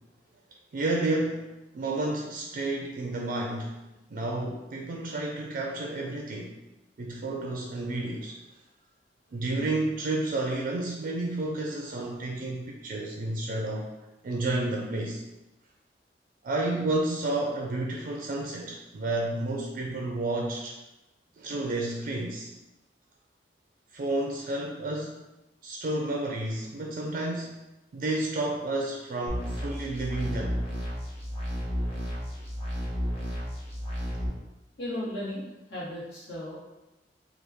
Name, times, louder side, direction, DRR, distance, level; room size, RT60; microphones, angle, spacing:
voice 1, 0.7-3.7 4.1-6.6 7.0-8.4 9.3-13.9 14.2-15.2 16.4-20.7 21.4-22.5 23.9-25.2 25.6-27.6 27.9-30.6, right 2 dB, 50° right, 0 dB, 0.4 m, -31 dB
sound 1, 29.3-34.3, equal, 35° left, 0.8 m, -32 dB
voice 2, 34.8-36.6, left 1 dB, 80° left, -9 dB, 1.3 m, -35 dB
3.0 x 2.3 x 3.4 m, 1.0 s
head